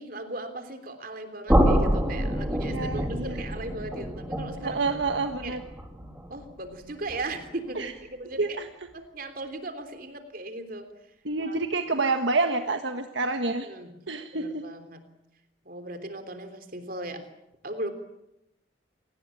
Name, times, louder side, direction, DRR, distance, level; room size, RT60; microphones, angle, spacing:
voice 1, 0.0-4.8 5.4-5.6 6.3-8.6 8.9-10.9 11.4-11.6 13.5-13.9 14.3-15.0 15.7-17.2 17.6-17.9, right 2 dB, 50° right, 8 dB, 3.4 m, -38 dB
sound 1, 1.5-7.4, equal, 10° right, 3.3 m, -27 dB
voice 2, 2.7-3.4 4.6-5.6 7.7-7.9 8.4-8.7 11.2-13.7 14.1-14.6, right 3 dB, 70° right, 6 dB, 1.5 m, -28 dB
29.0 x 19.0 x 8.8 m, 0.88 s
head